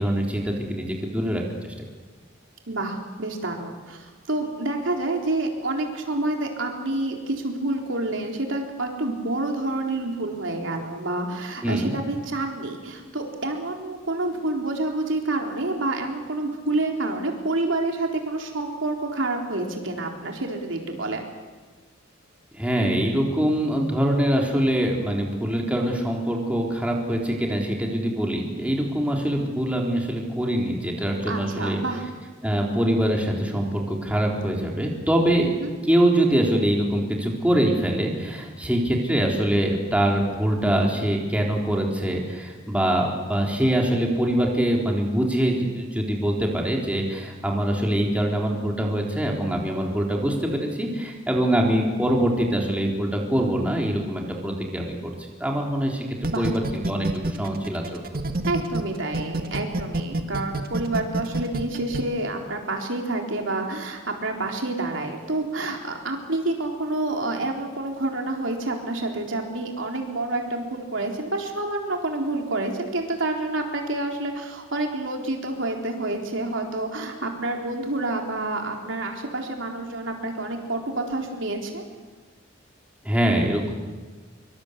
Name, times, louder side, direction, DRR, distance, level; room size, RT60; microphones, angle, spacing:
voice 1, 0.0-1.7 11.6-11.9 22.5-31.8 32.4-35.5 35.8-55.1 55.4-56.1 56.4-58.1 83.0-83.7, right 1 dB, 5° right, -1 dB, 3.9 m, -24 dB
voice 2, 2.7-21.2 31.3-32.0 35.4-35.7 56.3-56.5 58.5-81.8, right 2 dB, 70° right, 2 dB, 4.0 m, -28 dB
sound 1, 56.2-58.8 59.1-62.0, right 2 dB, 50° right, 1.9 m, -27 dB
25.5 x 24.0 x 8.3 m, 1.4 s
head